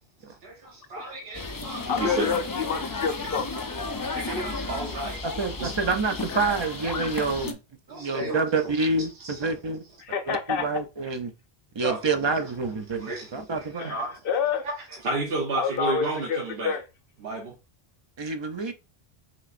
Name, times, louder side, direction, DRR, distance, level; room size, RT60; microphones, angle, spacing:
voice 1, 0.4-2.3 3.8-5.3 5.6-5.7 7.9-8.4 9.0-9.6 11.8-12.0 12.9-14.2 14.6-16.8 17.2-17.5, right 2 dB, 65° right, 1.1 m, -33 dB
sound 1, 1.3-7.5, left 3 dB, 30° left, 0.4 m, -33 dB
voice 2, 1.9-3.4 6.3-6.5 10.0-10.7 13.8-14.6 15.6-16.8, left 6 dB, 65° left, 0.7 m, -28 dB
voice 3, 5.2-7.6 7.9-9.8 10.3-11.3 11.7-13.0 13.3-13.9 18.2-18.7, right 3 dB, 35° right, 0.4 m, -27 dB
6.1 x 2.9 x 2.5 m
omnidirectional pair, 1.1 m